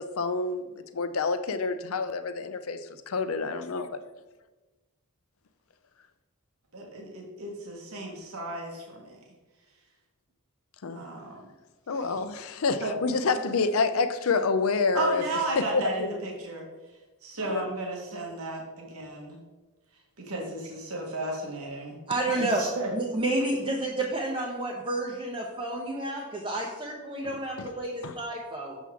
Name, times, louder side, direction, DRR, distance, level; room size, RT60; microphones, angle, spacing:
voice 1, 0.0-2.8 3.1-4.0 10.8-11.0 11.9-15.2 15.6-16.2 17.5-17.7 27.6-27.7 28.0-28.1, left 4 dB, 70° left, 0.5 m, -28 dB
voice 2, 6.7-9.2 10.9-11.4 12.8-13.0 14.9-16.7 17.2-19.4 20.3-22.0 22.3-22.9, right 2 dB, 80° right, 1.3 m, -34 dB
voice 3, 22.1-22.6 22.9-28.8, right 2 dB, 25° right, 0.7 m, -30 dB
7.2 x 6.0 x 3.5 m
head